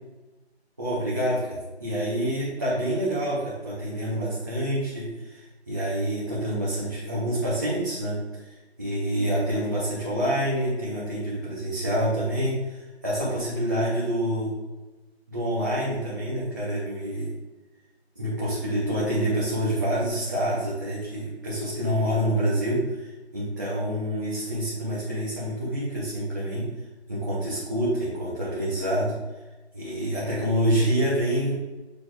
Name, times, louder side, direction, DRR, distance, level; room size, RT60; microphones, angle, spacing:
voice 1, 0.8-8.5 8.8-14.5 15.3-17.3 18.1-26.7 27.1-29.1 29.7-31.6, equal, 15° right, -11 dB, 1.0 m, -27 dB
6.8 x 4.2 x 4.8 m, 1.1 s
figure-of-eight pair, 175°, 33 cm